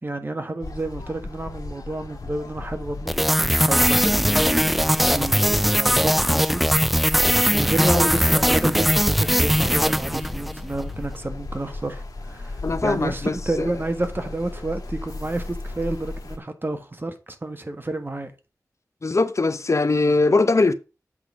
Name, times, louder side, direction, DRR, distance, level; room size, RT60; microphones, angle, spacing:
voice 1, 0.0-3.1 3.7-4.6 5.1-6.6 6.9-18.3, right 2 dB, 35° right, 1.4 m, -30 dB
sound 1, 0.6-16.4, left 2 dB, 90° left, 1.7 m, -36 dB
sound 2, 3.1-10.6, equal, ahead, 0.3 m, -20 dB
voice 2, 7.8-8.2 12.6-13.7 19.0-20.7, left 3 dB, 50° left, 0.7 m, -21 dB
8.0 x 3.9 x 5.9 m
wide cardioid pair, 50°, 6 cm